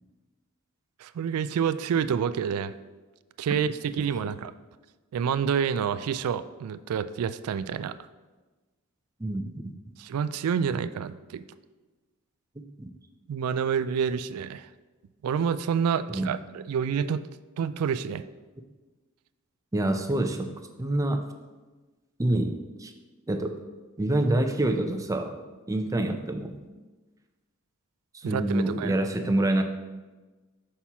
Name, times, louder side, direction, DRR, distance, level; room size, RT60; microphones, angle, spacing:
voice 1, 1.0-2.7 3.4-4.5 5.1-8.0 10.0-11.4 13.3-14.7 15.2-17.2 17.6-18.2 28.2-28.9, right 7 dB, 75° right, 14 dB, 0.3 m, -28 dB
voice 2, 9.2-9.7 12.8-12.9 16.1-16.3 19.7-20.5 20.8-21.2 22.2-22.9 23.3-23.6 24.0-25.4 25.7-26.5 28.1-29.6, right 1 dB, 15° right, 6 dB, 0.5 m, -26 dB
6.0 x 4.3 x 5.6 m, 1.2 s
head